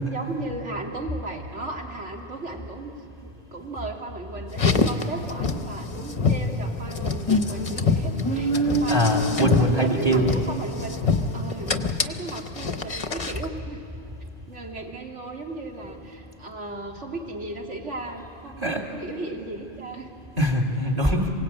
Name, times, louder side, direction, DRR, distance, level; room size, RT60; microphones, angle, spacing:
voice 1, 0.0-2.9 3.2-9.1 9.4-11.1 11.3-13.8 14.5-20.1, right 2 dB, 70° right, 1 dB, 2.6 m, -36 dB
Car, 4.5-13.5, left 3 dB, 30° left, 0.9 m, -25 dB
voice 2, 8.9-10.3 18.6-18.8 20.4-21.3, right 1 dB, 30° right, 1 dB, 2.6 m, -22 dB
27.0 x 17.5 x 8.8 m, 2.6 s
omnidirectional pair, 1.3 m